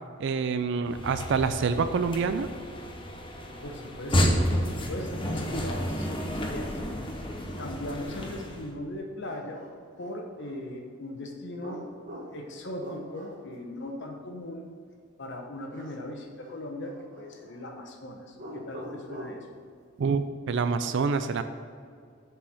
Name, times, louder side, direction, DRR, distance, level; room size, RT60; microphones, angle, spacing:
voice 1, 0.2-2.5 20.0-21.4, right 5 dB, 65° right, 10 dB, 0.4 m, -27 dB
sound 1, 0.8-8.7, equal, 25° left, 0.9 m, -31 dB
voice 2, 3.6-6.7 7.6-9.6 10.0-11.8 12.3-14.7 15.2-19.5, left 1 dB, 60° left, 2 dB, 1.1 m, -39 dB
sound 2, 9.2-10.6 11.6-13.5 15.7-16.1 16.4-17.6 18.3-19.5, equal, 40° right, 1.5 m, -44 dB
7.2 x 4.6 x 6.4 m, 2.2 s
head